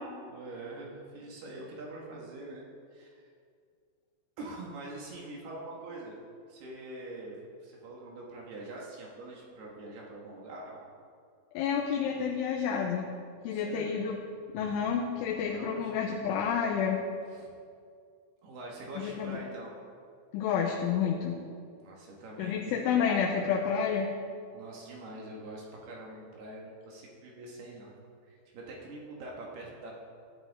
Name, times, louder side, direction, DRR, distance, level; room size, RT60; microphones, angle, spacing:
voice 1, 0.3-2.6 2.9-3.2 4.4-6.2 6.5-10.8 13.5-14.0 15.5-15.9 17.3-17.5 18.4-19.7 21.8-22.8 24.5-28.0 28.2-30.0, right 2 dB, 65° right, -3 dB, 3.4 m, -44 dB
voice 2, 11.5-13.1 13.4-14.2 14.5-17.0 19.0-19.4 20.3-21.4 22.4-24.1, left 7 dB, 85° left, 0 dB, 3.2 m, -29 dB
16.0 x 10.5 x 3.6 m, 2.2 s
omnidirectional pair, 5.5 m